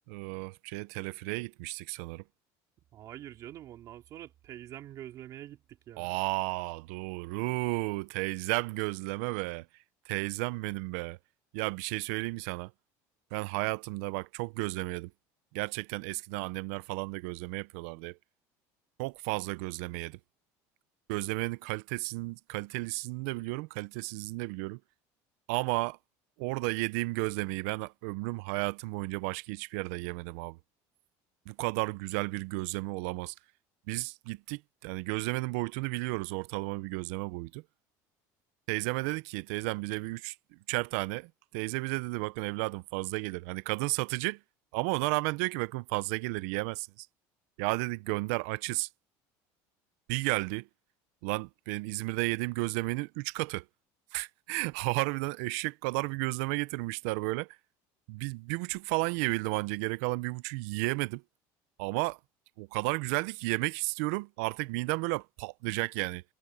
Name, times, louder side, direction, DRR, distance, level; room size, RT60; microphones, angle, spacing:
voice 1, 0.1-2.2 6.0-9.7 10.1-11.2 11.5-12.7 13.3-15.1 15.5-18.2 19.0-20.2 21.1-24.8 25.5-26.0 26.4-30.6 31.5-33.3 33.9-37.6 38.7-44.4 44.7-47.1 47.6-48.9 50.1-50.7 51.2-53.6 54.1-57.6 58.1-61.2 61.8-62.2 62.6-66.2, right 24 dB, 80° right, 0.5 m, -33 dB
voice 2, 2.9-6.2, right 12 dB, 45° right, 3.0 m, -46 dB
cardioid pair, 150°, 8 cm